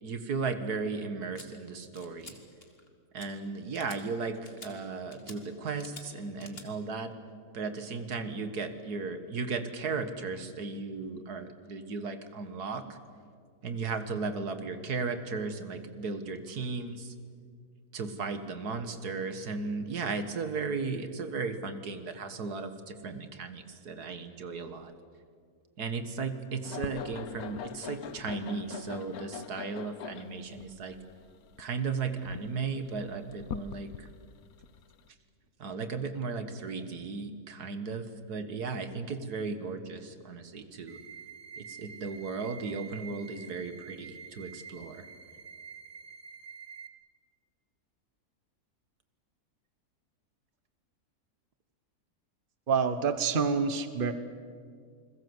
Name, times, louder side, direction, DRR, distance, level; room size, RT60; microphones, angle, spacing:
voice 1, 0.0-2.4 3.1-7.1 7.5-13.0 13.6-17.1 17.9-24.9 25.8-31.0 31.6-34.1 35.6-41.0 41.6-45.1, right 4 dB, 80° right, 9 dB, 2.1 m, -36 dB
sound 1, 1.4-1.5 2.0-2.4 2.6-2.9 3.2-3.3 3.7-4.0 4.5-4.7 5.1-5.4 5.8-6.1 6.4-6.7, left 3 dB, 40° left, 2.4 m, -48 dB
sound 2, 26.6-35.1, left 8 dB, 70° left, 1.3 m, -42 dB
sound 3, 40.9-46.9, right 6 dB, 50° right, 1.7 m, -47 dB
voice 2, 52.7-54.1, right 5 dB, 35° right, 10 dB, 1.4 m, -27 dB
28.5 x 21.5 x 8.0 m, 2.1 s
omnidirectional pair, 1.6 m